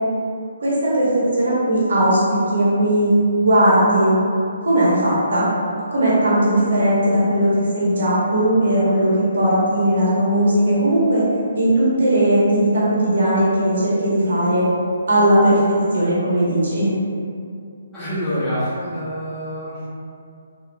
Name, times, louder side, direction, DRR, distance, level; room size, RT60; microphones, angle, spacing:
voice 1, 0.6-2.2 2.5-3.1 3.4-4.2 4.6-5.4 5.9-11.2 11.6-14.6 15.1-15.6 15.9-16.9, right 1 dB, 55° right, -8 dB, 1.0 m, -18 dB
voice 2, 17.9-19.8, equal, 10° left, -16 dB, 1.4 m, -26 dB
4.0 x 2.3 x 2.2 m, 2.4 s
figure-of-eight pair, 135°, 0 cm